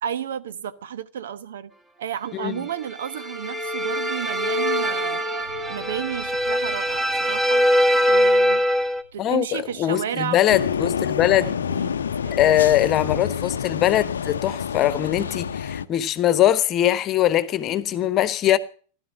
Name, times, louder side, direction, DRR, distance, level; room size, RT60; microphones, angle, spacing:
voice 1, 0.0-1.7 2.0-7.7 8.1-8.6 9.1-10.4 11.4-12.6, right 9 dB, 60° right, 1.1 m, -32 dB
voice 2, 2.3-2.6 9.2-11.6 12.3-18.6, left 12 dB, 35° left, 1.2 m, -21 dB
sound 1, 2.8-9.0, equal, 10° right, 1.8 m, -22 dB
sound 2, 5.4-11.7 12.1-12.7, left 1 dB, 80° right, 7.1 m, -50 dB
sound 3, 10.5-15.9, left 7 dB, 70° left, 0.7 m, -28 dB
16.5 x 12.0 x 7.4 m
figure-of-eight pair, 90°, 0 cm